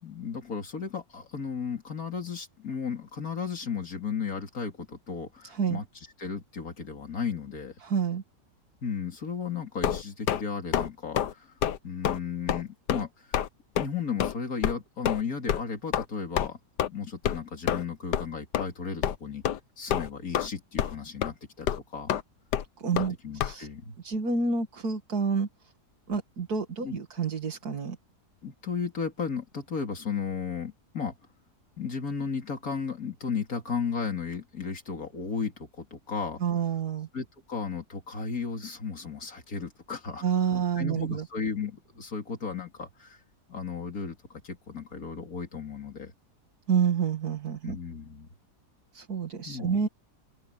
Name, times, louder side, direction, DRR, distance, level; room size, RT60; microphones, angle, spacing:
voice 1, 0.0-5.8 6.2-7.7 8.8-11.5 11.8-13.4 13.8-16.6 16.9-19.4 19.8-22.1 22.9-24.0 26.8-27.0 28.4-31.1 31.8-36.4 37.1-40.2 40.8-43.2 43.5-46.1 47.6-48.3 49.4-49.8, left 6 dB, 60° left, 3.1 m, -34 dB
voice 2, 5.4-5.8 7.8-8.2 22.8-23.1 23.4-23.7 24.0-25.5 26.1-28.0 36.4-37.1 40.2-41.3 46.7-47.8 48.9-49.9, right 6 dB, 65° right, 2.6 m, -28 dB
sound 1, 9.8-10.4 10.7-10.9 11.1-11.3 11.6-11.8 12.0-12.2 12.5-12.6 12.9-13.0 13.3-13.5 13.8-13.9 14.2-14.3 14.6-14.7 15.0-15.2 15.5-15.6 15.9-16.0 16.4-16.5 16.8-16.9 17.2-17.4 17.7-17.8 18.1-18.3 18.5-18.6 19.0-19.2 19.4-19.6 19.9-20.5 20.8-21.0 21.2-21.3 21.7-21.8 22.1-22.2 22.5-22.6 23.0-23.1 23.4-23.5, left 10 dB, 85° left, 1.5 m, -27 dB
omnidirectional pair, 1.8 m